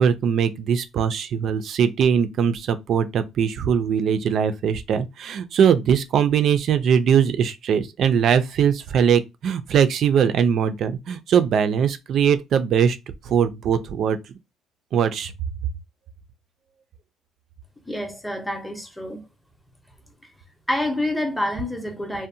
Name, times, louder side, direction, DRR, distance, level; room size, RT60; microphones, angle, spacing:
voice 1, 0.0-13.0 13.2-14.2 14.9-15.3, right 7 dB, 55° right, 0.3 m, -21 dB
voice 2, 17.9-19.2 20.7-22.3, left 1 dB, ahead, 0.6 m, -27 dB
2.6 x 2.0 x 2.6 m
cardioid pair, 120°, 0 cm